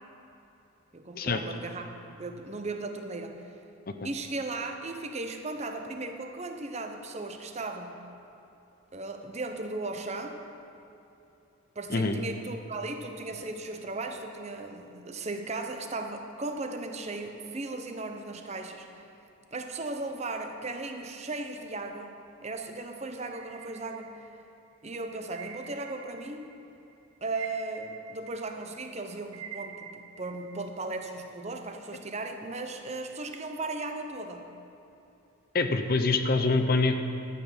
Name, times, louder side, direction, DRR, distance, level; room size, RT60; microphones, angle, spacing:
voice 1, 0.9-3.4 4.0-8.0 8.9-10.4 11.8-18.9 19.5-22.1 22.4-24.1 24.8-26.5 27.2-34.5, right 2 dB, 30° right, 5 dB, 0.7 m, -36 dB
sound 1, 23.3-24.6 25.3-26.6 26.9-30.7, right 8 dB, 70° right, 0.7 m, -46 dB
voice 2, 35.5-37.0, left 3 dB, 45° left, 8 dB, 0.6 m, -25 dB
12.0 x 8.3 x 5.6 m, 2.9 s
head